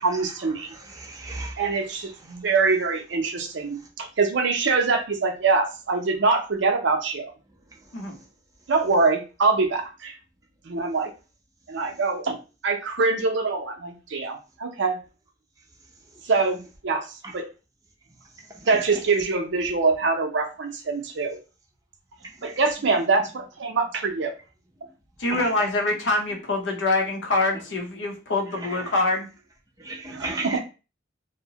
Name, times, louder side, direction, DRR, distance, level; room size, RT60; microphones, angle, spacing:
voice 1, 0.0-0.7 1.6-7.2 8.7-10.2 10.7-11.1 11.7-12.4 12.6-15.0 16.3-17.0 17.3-17.5 18.7-21.4 22.4-24.3 30.1-30.6, right 4 dB, 65° right, 0.5 m, -24 dB
voice 2, 0.7-1.6 17.2-17.3 22.4-22.5 25.3-25.4 28.7-28.8 29.8-30.6, right 2 dB, 20° right, 0.5 m, -34 dB
voice 3, 25.2-29.3, left 2 dB, 65° left, 0.7 m, -25 dB
2.7 x 2.1 x 2.8 m
head